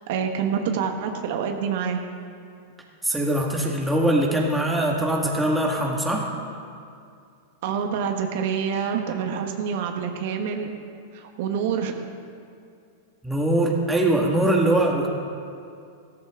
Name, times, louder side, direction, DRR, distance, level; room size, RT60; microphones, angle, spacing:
voice 1, 0.1-2.0 7.6-10.7 11.1-11.9, right 7 dB, 65° right, 4 dB, 1.3 m, -27 dB
voice 2, 3.0-6.3 13.2-15.1, right 1 dB, 5° right, -1 dB, 1.9 m, -22 dB
15.5 x 13.5 x 3.8 m, 2.4 s
hypercardioid pair, 130°, 0 cm